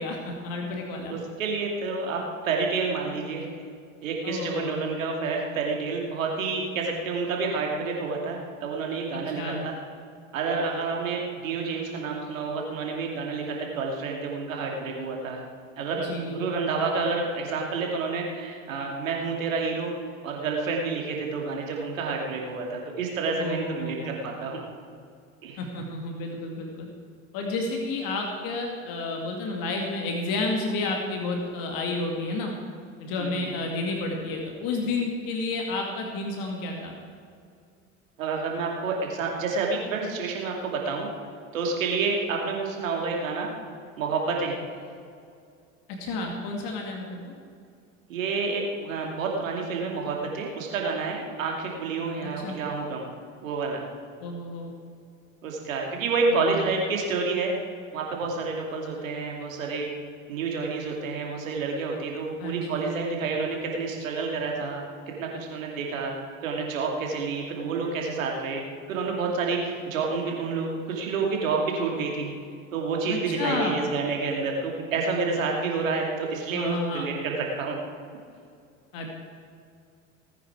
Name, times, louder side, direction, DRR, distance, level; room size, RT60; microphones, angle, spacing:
voice 1, 0.0-1.2 4.2-4.8 9.1-9.6 16.0-16.5 23.4-24.1 25.6-26.9 27.3-32.5 33.0-37.0 45.9-47.3 52.2-52.6 54.2-54.7 56.3-56.7 62.4-62.9 73.1-73.8 76.5-77.1 78.9-79.1, left 2 dB, 60° left, 1 dB, 2.4 m, -31 dB
voice 2, 1.1-3.5 4.0-9.7 10.3-15.4 15.8-20.0 20.2-24.6 25.4-25.6 33.2-33.5 38.2-41.1 41.5-43.5 44.0-44.6 48.1-53.1 53.4-53.8 55.4-57.5 57.9-59.9 60.3-64.9 65.2-66.1 66.4-68.6 68.9-72.3 72.7-77.8, right 4 dB, 85° right, 0 dB, 2.7 m, -29 dB
18.5 x 9.4 x 4.7 m, 2.3 s
hypercardioid pair, 75°, 39 cm